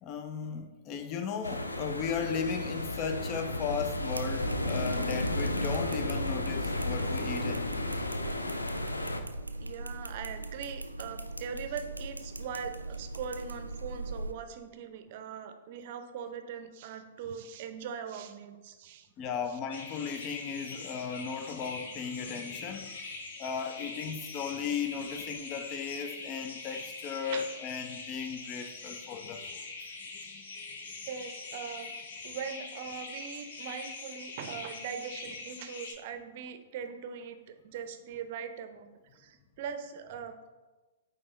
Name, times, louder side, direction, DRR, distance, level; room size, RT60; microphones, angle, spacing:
voice 1, 0.0-7.9 19.2-29.9 30.1-30.8, left 6 dB, 30° left, 0.5 m, -36 dB
sound 1, 1.4-9.2, left 1 dB, 85° left, 0.5 m, -33 dB
sound 2, 4.0-14.3, right 2 dB, 90° right, 0.3 m, -41 dB
voice 2, 9.6-19.1 27.3-27.4 31.1-40.4, right 7 dB, 45° right, 0.6 m, -41 dB
sound 3, 19.7-35.9, left 3 dB, 60° left, 0.9 m, -43 dB
8.7 x 3.5 x 3.2 m
figure-of-eight pair, 110°, 0 cm